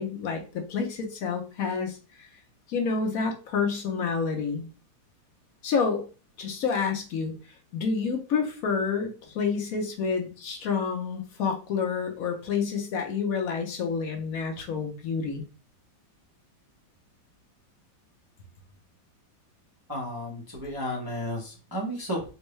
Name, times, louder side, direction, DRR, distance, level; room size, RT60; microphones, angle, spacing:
voice 1, 0.0-2.3 2.7-4.7 5.6-6.0 6.4-7.4 7.7-15.4, left 5 dB, 65° left, 3 dB, 0.9 m, -29 dB
voice 2, 19.9-22.2, equal, 35° right, -3 dB, 0.3 m, -33 dB
4.4 x 2.2 x 3.0 m, 0.34 s
omnidirectional pair, 2.0 m